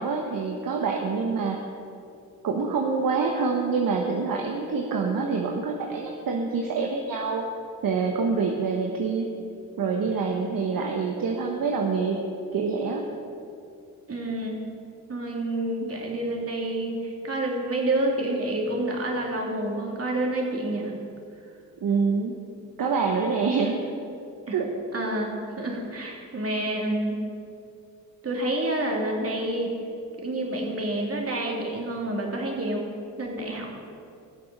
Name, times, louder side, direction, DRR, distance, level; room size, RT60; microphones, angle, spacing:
voice 1, 0.0-1.6 2.4-7.4 7.8-9.2 9.8-12.2 12.5-13.0 15.8-16.0 21.8-22.4 22.8-23.8 24.5-24.7, right 4 dB, 55° right, 1 dB, 1.3 m, -26 dB
voice 2, 14.1-14.6 15.1-20.9 24.5-24.6 24.9-27.2 28.2-29.7 30.2-32.8 33.2-33.7, right 1 dB, 35° right, -1 dB, 3.2 m, -28 dB
17.5 x 6.8 x 5.3 m, 2.5 s
hypercardioid pair, 50°, 42 cm